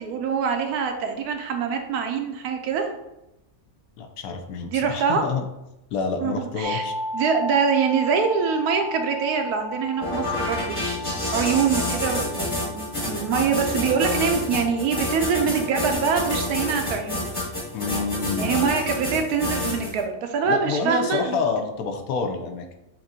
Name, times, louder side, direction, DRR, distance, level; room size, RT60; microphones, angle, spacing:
voice 1, 0.0-2.9 4.7-5.2 6.2-6.8 7.1-10.8 11.3-17.3 18.4-21.4, right 6 dB, 85° right, 4 dB, 1.1 m, -24 dB
voice 2, 4.0-5.4 5.9-6.9 17.7-18.6 20.5-22.7, left 4 dB, 75° left, 5 dB, 1.0 m, -28 dB
sound 1, 6.6-16.4, equal, 55° left, 0.5 m, -35 dB
sound 2, 10.0-20.0, left 2 dB, 25° left, 1.0 m, -28 dB
5.8 x 2.6 x 2.7 m, 0.90 s
omnidirectional pair, 1.6 m